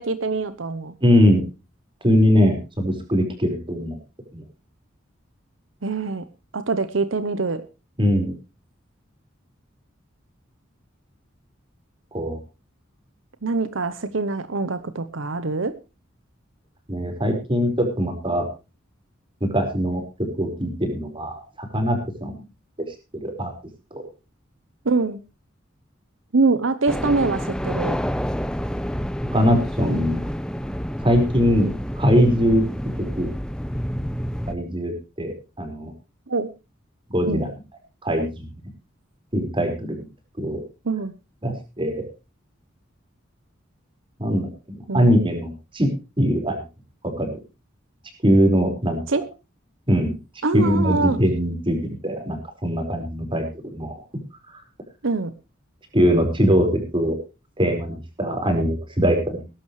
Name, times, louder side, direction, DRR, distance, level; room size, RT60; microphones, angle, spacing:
voice 1, 0.0-0.9 5.8-6.2 6.5-7.6 13.4-15.7 24.8-25.2 26.3-28.0 36.3-36.5 37.3-37.5 40.8-41.1 44.9-45.1 49.1-49.2 50.4-51.2 55.0-55.3, right 3 dB, 75° right, 12 dB, 0.9 m, -24 dB
voice 2, 1.0-1.4 2.0-4.0 4.3-4.4 8.0-8.3 12.1-12.4 16.9-18.5 19.4-20.0 20.4-22.3 23.2-23.5 23.9-24.0 29.3-30.2 31.0-31.7 32.0-32.6 33.2-33.3 34.5-35.9 37.1-37.5 38.0-38.5 39.3-40.0 40.4-40.6 41.4-42.1 44.2-45.9 46.2-46.6 47.2-47.4 48.2-49.2 49.9-50.2 50.5-54.0 55.9-56.7 56.9-57.1 57.6-59.4, equal, 25° right, 5 dB, 4.9 m, -21 dB
sound 1, 26.9-34.5, equal, 5° left, 0.8 m, -28 dB
20.5 x 11.5 x 3.2 m, 0.29 s
head